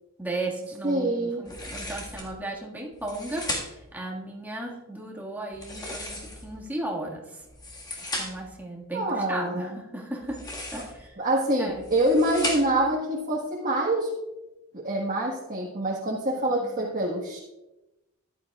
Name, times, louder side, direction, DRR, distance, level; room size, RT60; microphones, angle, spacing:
voice 1, 0.2-7.4 8.2-10.4 10.7-11.2 11.6-11.9 16.5-16.8, right 2 dB, 10° right, -2 dB, 1.8 m, -35 dB
voice 2, 0.8-1.4 8.9-9.8 11.2-14.1 14.7-17.4, right 1 dB, 40° right, -4 dB, 1.5 m, -26 dB
sound 1, 1.4-2.3 2.9-3.9 5.5-6.6 7.4-8.5 10.2-11.1 11.7-12.9, left 1 dB, 20° left, 1.8 m, -36 dB
14.5 x 11.5 x 2.4 m, 0.99 s
head